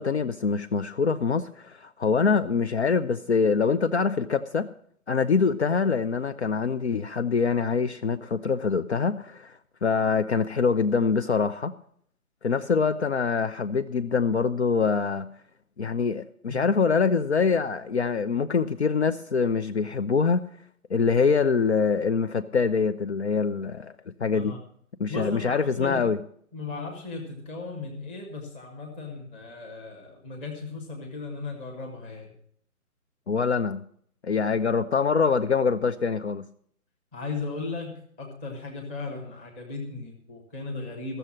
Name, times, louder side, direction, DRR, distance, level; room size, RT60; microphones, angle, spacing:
voice 1, 0.0-4.7 5.1-9.5 9.8-11.7 12.4-15.3 15.8-20.5 20.9-23.9 24.2-24.5 25.0-26.2 33.3-33.8 34.2-36.5, left 5 dB, 50° left, 9 dB, 0.6 m, -24 dB
voice 2, 25.1-26.1 26.5-32.3 37.1-41.2, left 3 dB, 10° left, -1 dB, 0.9 m, -36 dB
14.5 x 6.7 x 7.2 m, 0.63 s
hypercardioid pair, 155°, 45 cm